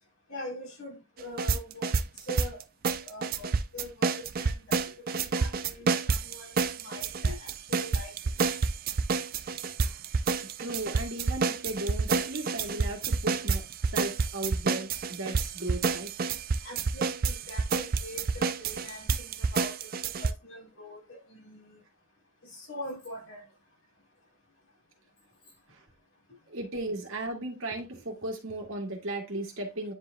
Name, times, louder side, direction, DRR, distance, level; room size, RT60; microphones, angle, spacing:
voice 1, 0.3-2.0 2.3-2.6 3.0-4.8 5.1-8.3 16.6-19.9 20.2-21.8 22.4-23.5, equal, 70° left, 3.7 m, -43 dB
sound 1, 1.2-20.3, right 4 dB, 40° right, 0.4 m, -29 dB
voice 2, 10.4-16.1 25.7-25.8 26.5-29.9, right 2 dB, 60° right, 1.9 m, -36 dB
9.8 x 4.7 x 2.2 m
head